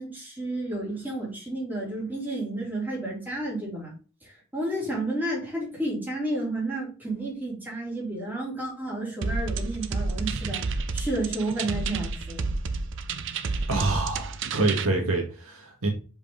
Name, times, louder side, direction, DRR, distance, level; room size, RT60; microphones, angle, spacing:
voice 1, 0.0-3.9 4.2-10.6 10.9-12.5, right 1 dB, 10° right, 3.2 m, -31 dB
sound 1, 9.2-14.9, right 4 dB, 60° right, 0.6 m, -30 dB
voice 2, 13.7-15.9, right 2 dB, 80° right, 1.8 m, -26 dB
5.3 x 4.9 x 3.8 m
head